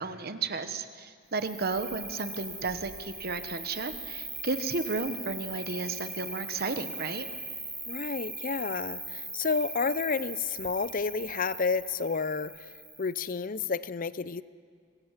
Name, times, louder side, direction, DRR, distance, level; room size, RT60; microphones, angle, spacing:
voice 1, 0.0-7.3, right 3 dB, 45° right, 10 dB, 1.1 m, -33 dB
Cricket, 1.3-13.3, right 2 dB, 5° right, 1.6 m, -40 dB
voice 2, 7.9-12.7 13.0-14.4, left 4 dB, 40° left, 17 dB, 0.6 m, -30 dB
26.0 x 21.5 x 7.4 m, 2.1 s
head